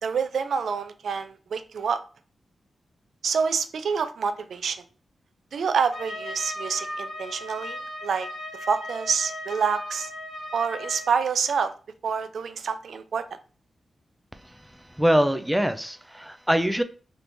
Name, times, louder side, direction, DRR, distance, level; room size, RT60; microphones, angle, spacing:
voice 1, 0.0-2.0 3.2-4.8 5.5-8.3 8.5-10.1 10.5-11.7 12.0-13.2, right 6 dB, 80° right, 11 dB, 0.3 m, -27 dB
Trumpet, 5.9-11.2, left 1 dB, 65° left, 1.3 m, -37 dB
voice 2, 14.3-16.8, equal, 5° right, 9 dB, 0.4 m, -24 dB
3.5 x 2.9 x 2.6 m, 0.38 s
cardioid pair, 65°, 0 cm